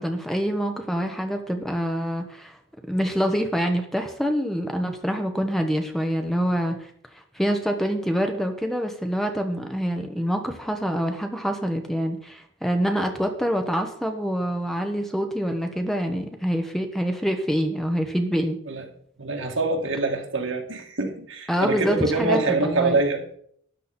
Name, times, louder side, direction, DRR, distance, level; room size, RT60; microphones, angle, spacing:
voice 1, 0.0-2.6 2.9-6.9 7.3-18.6 21.5-23.0, equal, ahead, 5 dB, 1.1 m, -26 dB
voice 2, 19.2-23.4, right 3 dB, 75° right, 2 dB, 2.4 m, -25 dB
12.5 x 10.5 x 4.4 m, 0.63 s
head